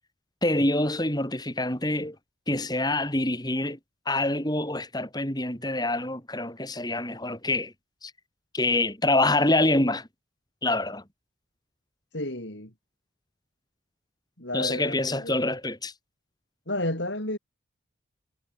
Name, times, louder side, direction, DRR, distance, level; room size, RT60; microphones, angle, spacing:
voice 1, 0.4-2.2 2.5-3.8 4.1-7.7 8.0-8.1 8.5-10.1 10.6-11.0 14.5-15.9, left 2 dB, 20° left, 5.7 m, -26 dB
voice 2, 12.1-12.7 14.4-15.3 16.7-17.4, left 1 dB, 55° left, 5.5 m, -31 dB
head